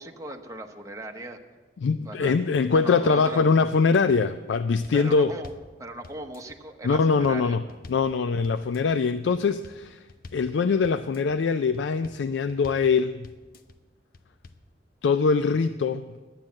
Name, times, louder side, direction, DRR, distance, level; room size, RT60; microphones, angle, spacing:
voice 1, 0.0-1.4 2.1-2.3 2.7-3.5 4.9-5.5 5.8-7.8, right 1 dB, 20° right, 3 dB, 0.9 m, -38 dB
voice 2, 1.8-5.3 6.8-10.0 10.3-13.3 15.0-16.1, left 5 dB, 75° left, 12 dB, 0.4 m, -23 dB
sound 1, 3.7-4.2 4.5-5.7 6.0-6.6 6.9-8.1 8.4-9.0 9.3-9.8 10.1-10.5 10.8-11.4 11.7-12.2 12.5-12.9 13.2-13.8 14.1-14.7, left 3 dB, 55° left, 0.7 m, -47 dB
11.5 x 9.1 x 7.4 m, 1.3 s
head